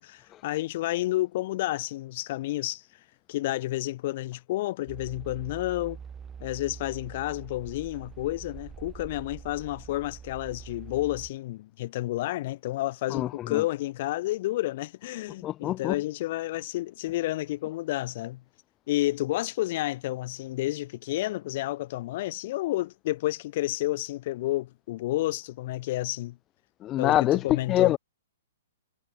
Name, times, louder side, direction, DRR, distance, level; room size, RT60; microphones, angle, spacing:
voice 1, 0.0-2.8 3.3-6.0 6.4-18.4 18.9-26.4 27.0-27.9, left 16 dB, 40° left, 1.8 m, -30 dB
sound 1, 4.9-11.3, right 7 dB, 10° right, 5.9 m, -44 dB
voice 2, 13.1-13.6 15.4-16.0 26.8-28.0, left 13 dB, 20° left, 0.4 m, -25 dB
hypercardioid pair, 165°, 0 cm